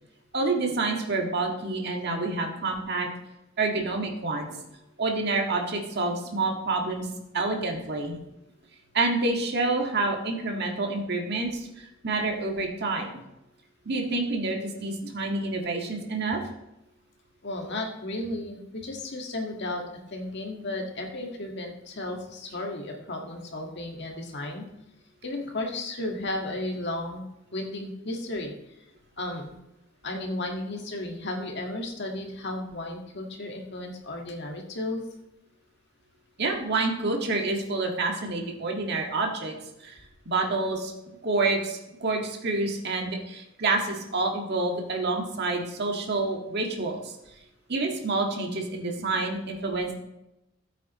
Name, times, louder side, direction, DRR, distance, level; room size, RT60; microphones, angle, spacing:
voice 1, 0.3-3.1 3.6-4.6 5.0-7.1 7.3-8.2 8.9-13.1 13.9-16.4 36.4-39.6 39.8-40.0 40.3-40.9 41.2-47.1 47.7-49.9, right 3 dB, 55° right, 1 dB, 1.8 m, -28 dB
voice 2, 17.4-24.7 25.2-28.5 29.2-29.6 30.0-35.0, left 2 dB, 55° left, 1 dB, 1.7 m, -34 dB
14.5 x 8.3 x 3.1 m, 0.91 s
head